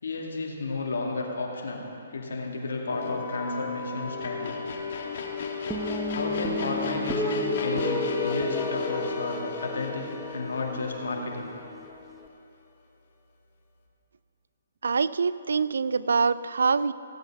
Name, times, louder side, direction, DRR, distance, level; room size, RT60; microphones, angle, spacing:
voice 1, 0.0-4.6 6.1-11.5, left 3 dB, 75° left, -1 dB, 2.3 m, -32 dB
sound 1, 2.9-12.1, left 5 dB, 55° left, 1.8 m, -34 dB
sound 2, 5.7-12.3, left 1 dB, 5° right, 0.7 m, -33 dB
voice 2, 14.8-16.9, right 5 dB, 75° right, 17 dB, 0.4 m, -24 dB
16.0 x 8.1 x 5.8 m, 2.8 s
hypercardioid pair, 140°, 0 cm